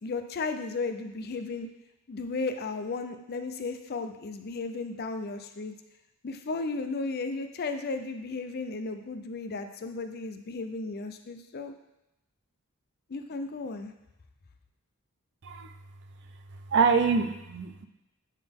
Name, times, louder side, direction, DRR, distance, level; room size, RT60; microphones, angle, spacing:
voice 1, 0.0-1.7 2.1-5.7 6.2-11.7 13.1-13.9, left 3 dB, 45° left, 7 dB, 0.5 m, -34 dB
voice 2, 15.4-15.7 16.7-17.9, right 5 dB, 55° right, 7 dB, 0.5 m, -25 dB
9.1 x 3.8 x 3.6 m, 0.91 s
head